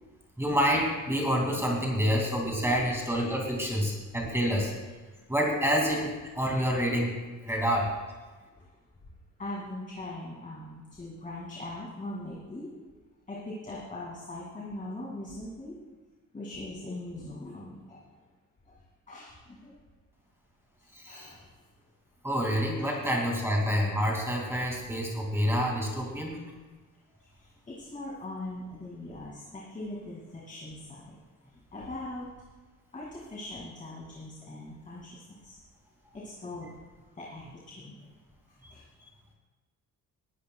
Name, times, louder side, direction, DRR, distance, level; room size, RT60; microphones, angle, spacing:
voice 1, 0.4-4.8 5.3-7.9 20.9-21.3 22.2-26.4 38.6-38.7, equal, 5° right, -2 dB, 2.3 m, -28 dB
voice 2, 8.5-8.8 9.4-12.9 13.3-15.8 16.3-18.2 18.6-18.8 19.1-19.7 20.8-21.5 22.8-22.9 27.2-32.3 32.9-35.6 36.1-36.7 37.1-38.1 38.5-38.8, left 1 dB, 25° left, -5 dB, 2.3 m, -41 dB
20.0 x 12.5 x 2.3 m, 1.3 s
cardioid pair, 145°, 33 cm